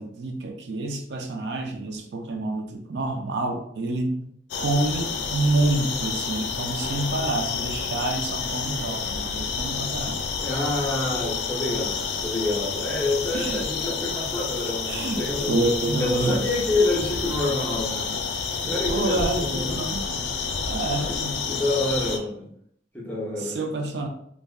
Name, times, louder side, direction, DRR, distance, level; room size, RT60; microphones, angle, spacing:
voice 1, 0.0-4.2 4.6-10.3 13.3-13.7 14.9-16.4 18.6-20.4 20.7-21.6 23.4-24.1, right 2 dB, 70° right, 3 dB, 0.4 m, -28 dB
sound 1, 4.5-22.2, left 5 dB, 85° left, 0.4 m, -29 dB
voice 2, 10.4-15.7 16.0-18.2 18.6-19.8 20.8-21.2 21.5-22.5 22.9-23.6, left 2 dB, 10° left, -4 dB, 0.6 m, -27 dB
3.4 x 2.1 x 2.3 m, 0.69 s
head